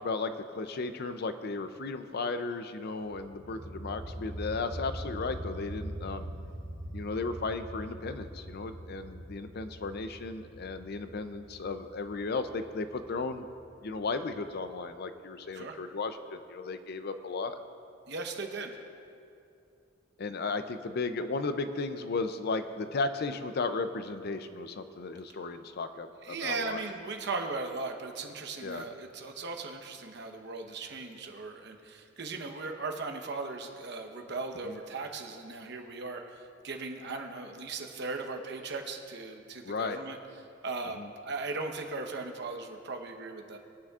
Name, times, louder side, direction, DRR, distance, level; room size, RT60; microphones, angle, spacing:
voice 1, 0.0-6.3 6.9-13.5 13.8-17.6 20.2-26.1 26.4-26.8 28.6-28.9 34.6-34.8 39.6-40.0 41.0-41.1, left 3 dB, 55° left, 10 dB, 0.5 m, -35 dB
sound 1, 3.0-14.6, equal, 40° right, 2.8 m, -43 dB
voice 2, 18.1-18.8 26.2-40.2 40.6-41.0 41.2-43.6, right 3 dB, 60° right, 4 dB, 1.0 m, -38 dB
21.0 x 9.1 x 2.4 m, 2.6 s
head